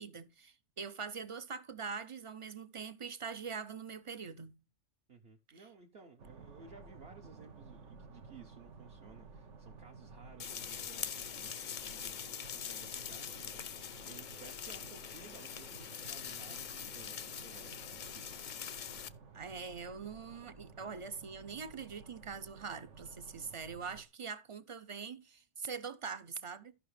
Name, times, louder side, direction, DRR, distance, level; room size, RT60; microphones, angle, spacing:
voice 1, 0.0-4.6 19.3-26.7, right 5 dB, 40° right, 0.4 m, -43 dB
voice 2, 5.1-18.5, right 5 dB, 60° right, 1.2 m, -57 dB
sound 1, 6.2-24.0, right 4 dB, 80° right, 1.4 m, -54 dB
sound 2, 10.4-19.1, left 8 dB, 55° left, 0.6 m, -43 dB
14.0 x 5.7 x 3.2 m
omnidirectional pair, 1.2 m